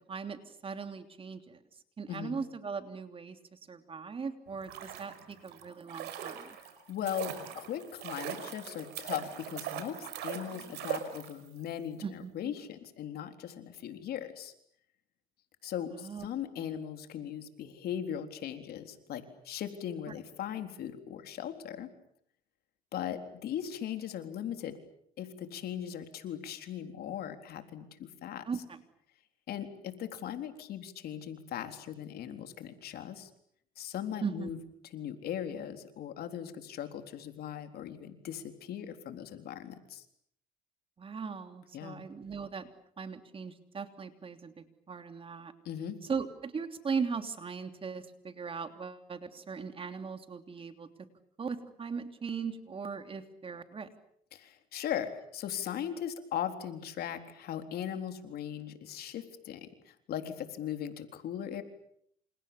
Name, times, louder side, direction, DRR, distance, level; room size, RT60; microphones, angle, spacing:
voice 1, 0.1-1.6 2.0-6.6 12.0-12.5 15.9-16.3 16.6-16.7 28.5-28.8 34.2-34.5 41.0-42.7 43.0-45.5 46.1-50.9 51.4-53.9, right 5 dB, 30° right, 8 dB, 3.1 m, -39 dB
voice 2, 2.1-2.4 6.5-14.5 15.6-21.9 22.9-24.8 25.2-28.4 29.5-33.3 33.8-34.6 34.9-40.0 41.7-42.0 45.6-46.0 54.3-61.6, left 9 dB, 65° left, 7 dB, 3.9 m, -39 dB
sound 1, 4.5-11.7 11.9-12.0, right 10 dB, 80° right, 5.5 m, -41 dB
28.5 x 28.5 x 7.0 m, 0.69 s
cardioid pair, 110°, 17 cm